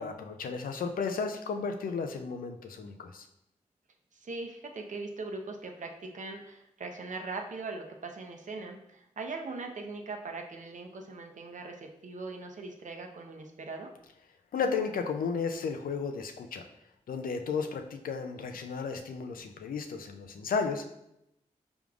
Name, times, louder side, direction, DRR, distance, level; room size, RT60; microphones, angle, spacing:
voice 1, 0.0-3.3 14.5-16.6 17.1-20.9, left 5 dB, 75° left, 6 dB, 0.4 m, -33 dB
voice 2, 4.1-13.9, right 3 dB, 60° right, 3 dB, 0.6 m, -40 dB
4.8 x 3.5 x 2.4 m, 0.83 s
cardioid pair, 45°, 15 cm